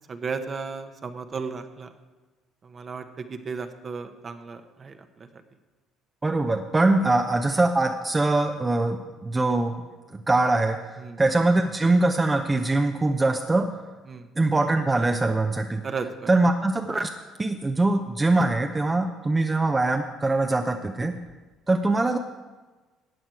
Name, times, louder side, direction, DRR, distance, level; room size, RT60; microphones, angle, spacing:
voice 1, 0.1-1.9 2.6-5.4 7.0-7.2 11.0-11.2 14.1-14.3 15.8-16.3, right 5 dB, 40° right, 8 dB, 1.1 m, -35 dB
voice 2, 6.2-9.7 10.3-13.7 14.4-15.8 16.3-17.1 17.4-21.1 21.7-22.2, right 2 dB, 20° right, 5 dB, 0.7 m, -23 dB
14.0 x 8.9 x 4.7 m, 1.2 s
hypercardioid pair, 65°, 0 cm